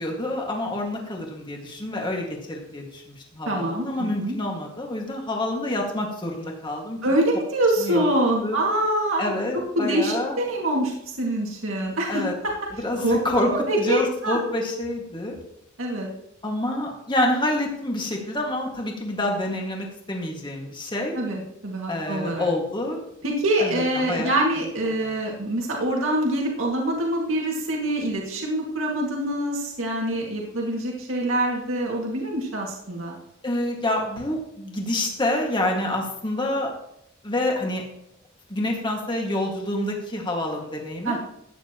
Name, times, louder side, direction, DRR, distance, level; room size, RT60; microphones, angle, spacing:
voice 1, 0.0-7.0 7.8-8.0 8.4-8.6 9.2-10.4 12.1-12.3 12.8-13.5 13.8-15.4 16.4-21.1 21.9-23.0 23.6-24.3 24.9-25.1 33.4-36.7 37.2-37.8 38.5-41.2, left 1 dB, 25° left, 0 dB, 2.0 m, -27 dB
voice 2, 3.5-4.4 7.0-9.3 9.8-12.2 13.0-14.4 15.8-16.1 21.1-22.5 23.2-33.2 41.0-41.2, right 1 dB, 75° right, -1 dB, 2.2 m, -25 dB
14.5 x 9.6 x 3.0 m, 0.77 s
head